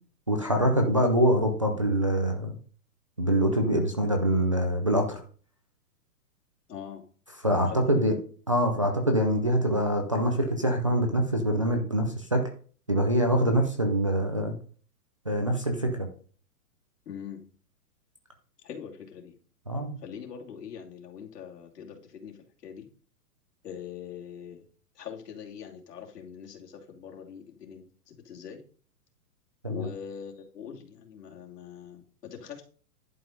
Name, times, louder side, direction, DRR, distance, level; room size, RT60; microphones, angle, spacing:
voice 1, 0.3-2.6 3.2-5.2 7.4-8.2 8.5-12.5 12.9-14.5 15.3-16.1 19.7-19.9 29.6-29.9, right 1 dB, 20° right, 1 dB, 0.5 m, -24 dB
voice 2, 6.7-7.0 7.7-8.1 17.1-17.4 18.6-19.3 20.0-22.3 22.6-22.9 23.6-24.6 25.0-28.6 29.7-32.0 32.3-32.6, left 7 dB, 80° left, 1 dB, 2.8 m, -42 dB
11.0 x 5.4 x 5.2 m, 0.44 s
hypercardioid pair, 180°, 47 cm